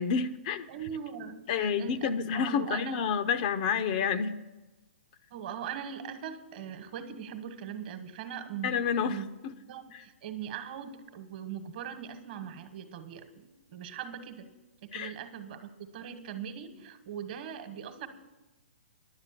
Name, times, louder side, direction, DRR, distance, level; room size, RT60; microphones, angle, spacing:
voice 1, 0.0-0.7 1.5-4.4 8.6-9.5 9.9-10.0 14.9-15.1, left 6 dB, 40° left, 13 dB, 0.5 m, -29 dB
voice 2, 0.7-3.0 5.3-8.7 9.1-9.3 9.7-14.5 14.9-18.1, right 8 dB, 45° right, 9 dB, 1.2 m, -40 dB
11.0 x 7.3 x 8.1 m, 1.1 s
hypercardioid pair, 150°, 7 cm